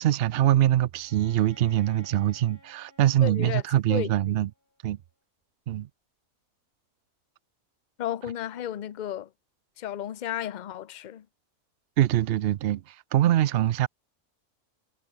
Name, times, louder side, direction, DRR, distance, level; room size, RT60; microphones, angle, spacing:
voice 1, 0.0-4.5 4.8-5.0 5.7-5.9 12.0-13.9, right 12 dB, 80° right, 0.5 m, -23 dB
Bowed string instrument, 1.0-4.7, left 2 dB, 40° left, 5.2 m, -56 dB
voice 2, 3.2-3.6 3.9-4.1 8.0-9.3 9.8-11.3, left 11 dB, 55° left, 0.5 m, -33 dB
omnidirectional pair, 1.6 m